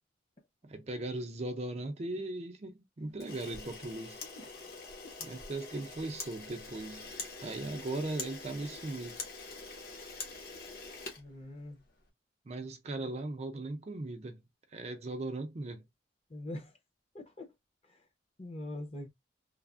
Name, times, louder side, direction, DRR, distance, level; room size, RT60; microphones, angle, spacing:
voice 1, 0.6-4.2 5.2-7.1 7.4-9.2 12.4-14.4 14.7-15.8, right 2 dB, 35° right, 0.4 m, -38 dB
Camera, 3.2-11.9, left 4 dB, 55° left, 1.0 m, -45 dB
voice 2, 11.2-11.8 16.3-16.7 17.1-17.5 18.4-19.1, left 1 dB, 35° left, 0.7 m, -42 dB
3.2 x 2.0 x 2.4 m
head